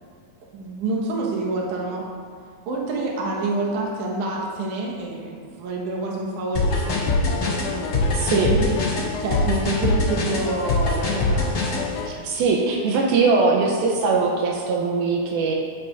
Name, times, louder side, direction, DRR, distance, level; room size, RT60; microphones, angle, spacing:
voice 1, 0.5-2.1 2.7-8.8 9.2-11.8, right 2 dB, 65° right, -2 dB, 2.6 m, -28 dB
sound 1, 6.5-11.8, left 2 dB, 35° left, 1.7 m, -23 dB
sound 2, 6.6-12.1, left 6 dB, 85° left, 2.5 m, -32 dB
voice 2, 8.2-8.5 12.1-15.6, right 4 dB, 80° right, -1 dB, 2.6 m, -21 dB
11.5 x 9.8 x 2.6 m, 2.1 s
omnidirectional pair, 4.3 m